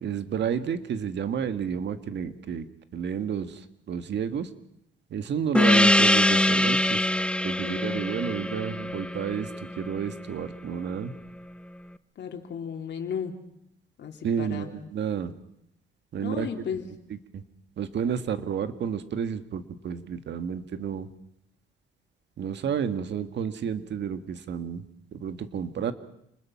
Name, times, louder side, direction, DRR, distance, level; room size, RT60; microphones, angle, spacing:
voice 1, 0.0-2.7 2.9-4.5 5.1-7.0 7.4-11.1 14.2-15.3 16.1-16.5 17.1-17.4 17.8-21.1 22.4-24.8 25.1-25.9, right 7 dB, 60° right, 10 dB, 1.7 m, -31 dB
Gong, 5.5-10.5, left 1 dB, 5° left, 0.8 m, -23 dB
voice 2, 7.6-8.0 12.2-13.4 14.0-14.9 16.2-16.9, left 7 dB, 60° left, 3 dB, 3.2 m, -35 dB
28.5 x 20.5 x 5.9 m, 0.77 s
cardioid pair, 90°, 20 cm